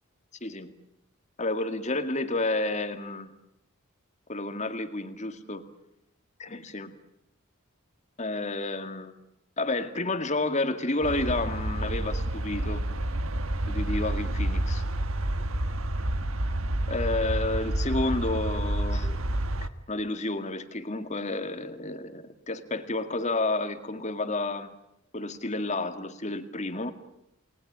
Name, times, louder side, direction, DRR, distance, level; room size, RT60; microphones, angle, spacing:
voice 1, 0.4-0.7 1.4-3.3 4.3-5.7 6.4-6.9 8.2-9.1 9.6-12.8 13.7-14.8 16.9-19.2 19.9-24.7 25.1-26.9, left 2 dB, 35° left, 9 dB, 2.1 m, -30 dB
sound 1, 11.0-19.7, right 1 dB, 70° right, 1.4 m, -29 dB
29.5 x 20.5 x 8.8 m, 0.83 s
head